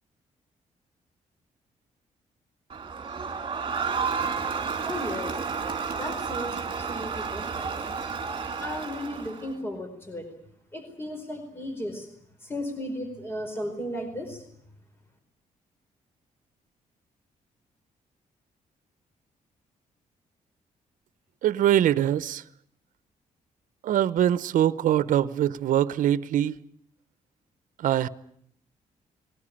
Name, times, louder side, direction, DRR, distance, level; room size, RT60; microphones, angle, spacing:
Crowd, 2.7-9.5, right 5 dB, 40° right, 2.9 m, -31 dB
voice 1, 4.8-5.5 5.8-7.7 8.6-10.3 10.7-12.1 12.4-14.4, equal, 15° left, 4.6 m, -35 dB
voice 2, 21.4-22.4 23.8-26.6 27.8-28.1, right 11 dB, 85° right, 0.9 m, -23 dB
20.5 x 18.5 x 9.9 m
cardioid pair, 125°, 13 cm